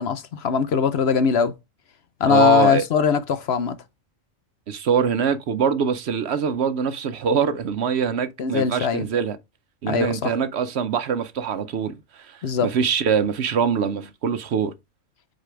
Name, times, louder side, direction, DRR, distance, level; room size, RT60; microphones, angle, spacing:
voice 1, 0.0-1.5 2.2-3.8 8.4-9.0 9.9-10.3 12.4-12.7, left 7 dB, 60° left, 0.9 m, -21 dB
voice 2, 2.3-2.8 4.7-9.4 9.8-14.7, right 7 dB, 60° right, 0.9 m, -23 dB
7.9 x 4.1 x 3.3 m
omnidirectional pair, 1.3 m